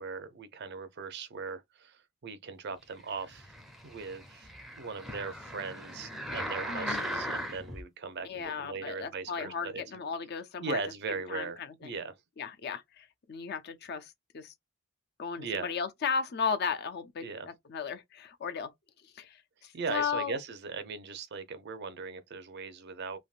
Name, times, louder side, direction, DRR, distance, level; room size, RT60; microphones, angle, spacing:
voice 1, 0.0-3.5 3.8-4.5 4.8-9.8 10.6-12.1 15.4-15.7 17.2-17.5 19.7-23.2, right 4 dB, 50° right, 0.5 m, -39 dB
sound 1, 3.2-7.8 8.4-8.5, equal, ahead, 0.5 m, -38 dB
voice 2, 6.7-7.2 8.2-10.8 11.3-11.9 12.4-14.5 15.2-18.7 19.0-20.4, left 6 dB, 50° left, 0.5 m, -35 dB
3.4 x 2.1 x 2.4 m
head